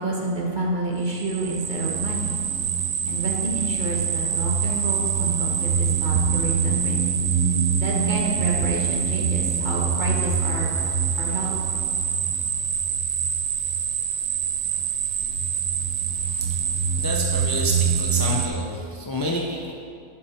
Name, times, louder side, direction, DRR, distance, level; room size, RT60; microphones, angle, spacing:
voice 1, 0.0-2.3 3.1-7.0 7.8-10.8 11.2-11.6, right 2 dB, 35° right, -2 dB, 1.2 m, -29 dB
sound 1, 1.1-18.5, right 7 dB, 80° right, 1.1 m, -24 dB
voice 2, 16.1-19.7, equal, 30° left, -2 dB, 0.4 m, -30 dB
11.5 x 5.2 x 4.4 m, 2.4 s
omnidirectional pair, 1.5 m